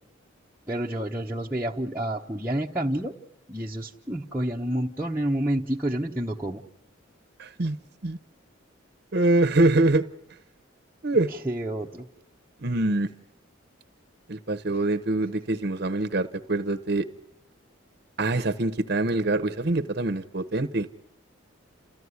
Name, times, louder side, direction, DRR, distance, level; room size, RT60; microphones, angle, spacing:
voice 1, 0.7-3.1 3.5-6.6 11.4-12.1, right 1 dB, 10° right, 0.9 m, -29 dB
voice 2, 7.4-7.8 8.0-8.2 9.1-10.1 11.0-11.3 12.6-13.1 14.3-17.0 18.2-20.9, right 2 dB, 50° right, 0.8 m, -24 dB
30.0 x 14.5 x 9.6 m
head